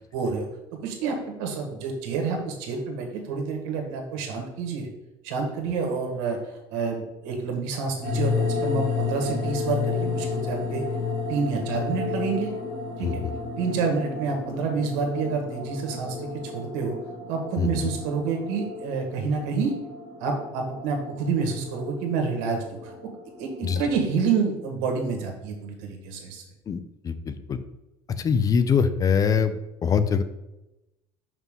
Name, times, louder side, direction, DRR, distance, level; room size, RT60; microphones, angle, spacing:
voice 1, 0.1-0.4 0.8-4.9 5.2-6.4 6.7-10.8 11.3-12.5 13.0-13.2 13.6-16.9 17.3-19.7 20.2-22.9 23.4-26.4, right 5 dB, 85° right, 2 dB, 1.5 m, -28 dB
sound 1, 8.0-23.9, left 4 dB, 75° left, 1.5 m, -32 dB
voice 2, 26.7-27.6 28.2-30.2, left 6 dB, 35° left, 12 dB, 0.5 m, -23 dB
5.9 x 5.4 x 3.7 m, 0.94 s
supercardioid pair, 105°, 11 cm